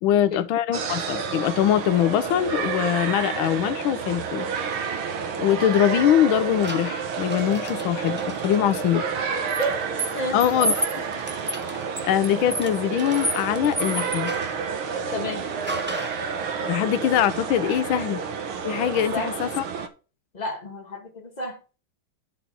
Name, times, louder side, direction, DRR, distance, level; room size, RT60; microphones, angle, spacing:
voice 1, 0.0-4.5 5.4-9.0 10.3-10.9 12.0-14.3 16.7-18.2 18.6-19.6, left 11 dB, 85° left, 1.5 m, -22 dB
sound 1, 0.7-19.9, right 6 dB, 85° right, 2.0 m, -30 dB
sound 2, 6.6-8.5 9.5-14.6 15.7-16.3, right 1 dB, 15° right, 0.3 m, -32 dB
voice 2, 15.1-15.4 19.1-19.3 20.3-21.8, equal, 25° left, 1.2 m, -31 dB
10.5 x 4.3 x 5.5 m
omnidirectional pair, 2.2 m